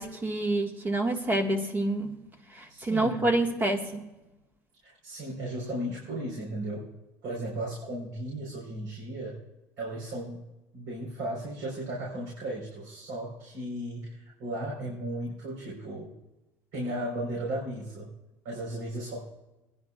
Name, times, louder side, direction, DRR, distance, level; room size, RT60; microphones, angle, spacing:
voice 1, 0.0-2.1 2.5-4.1, right 2 dB, 30° right, 3 dB, 1.8 m, -27 dB
voice 2, 2.7-3.2 4.8-6.9 7.2-9.4 9.8-10.4 10.7-16.2 16.7-18.1 18.4-19.3, right 1 dB, 80° right, -4 dB, 4.4 m, -35 dB
22.5 x 10.5 x 2.4 m, 1.0 s
cardioid pair, 125°, 7 cm